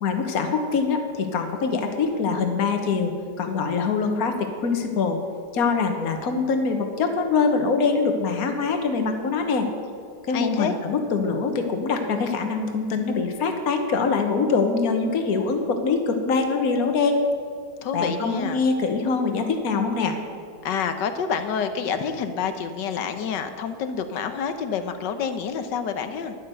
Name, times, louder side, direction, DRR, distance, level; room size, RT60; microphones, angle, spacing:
voice 1, 0.0-3.1 3.4-5.2 5.5-9.7 10.3-17.2 17.9-20.2, left 4 dB, 60° left, 5 dB, 1.6 m, -24 dB
voice 2, 10.3-10.7 17.8-18.6 20.6-26.4, left 6 dB, 90° left, 9 dB, 1.5 m, -28 dB
10.5 x 10.0 x 6.8 m, 2.3 s
omnidirectional pair, 1.8 m